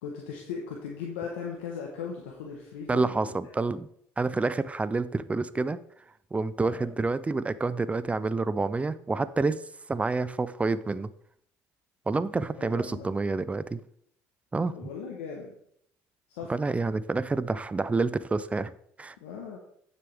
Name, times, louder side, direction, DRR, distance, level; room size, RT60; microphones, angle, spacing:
voice 1, 0.0-3.5 6.6-6.9 12.6-13.1 14.7-15.5 16.3-16.5 19.2-19.6, left 6 dB, 90° left, -1 dB, 1.3 m, -38 dB
voice 2, 2.9-3.9 4.2-5.8 6.3-9.6 9.9-11.1 12.1-13.8 14.5-14.7 16.5-18.7 19.0-19.2, right 3 dB, 20° right, 15 dB, 0.5 m, -28 dB
9.6 x 6.8 x 3.6 m, 0.68 s
supercardioid pair, 70°, 6 cm